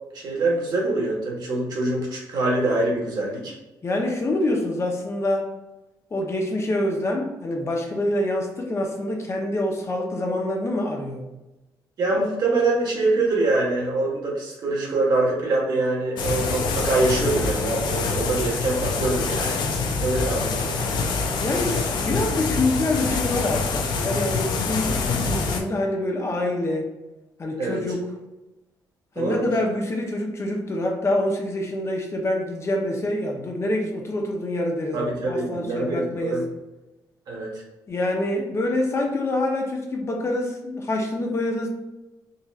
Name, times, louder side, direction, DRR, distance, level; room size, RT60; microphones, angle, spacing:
voice 1, 0.1-3.5 12.0-19.6 20.0-20.8 27.6-27.8 29.1-29.4 34.9-36.4 37.3-37.5, right 2 dB, 65° right, -2 dB, 1.3 m, -24 dB
voice 2, 3.8-5.5 6.1-11.3 19.8-20.1 21.4-26.9 27.4-28.0 29.2-36.4 37.9-41.7, left 1 dB, 35° left, 1 dB, 0.8 m, -26 dB
sound 1, 16.2-25.6, left 4 dB, 70° left, 0.6 m, -25 dB
3.9 x 2.8 x 2.4 m, 1.0 s
cardioid pair, 90°, 8 cm